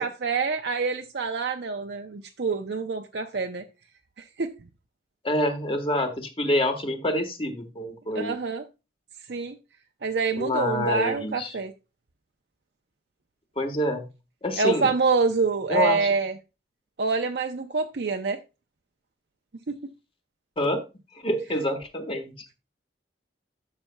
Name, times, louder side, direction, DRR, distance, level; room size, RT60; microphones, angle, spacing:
voice 1, 0.0-3.6 4.2-4.5 8.1-8.6 9.3-9.6 10.0-11.7 14.6-16.3 17.0-18.4 19.7-19.8, right 4 dB, 65° right, 0.6 m, -26 dB
voice 2, 5.2-8.4 10.3-11.6 13.6-14.1 14.4-14.9 15.7-16.1 20.6-20.8 21.1-22.3, left 1 dB, 30° left, 1.3 m, -27 dB
12.0 x 6.6 x 2.2 m
head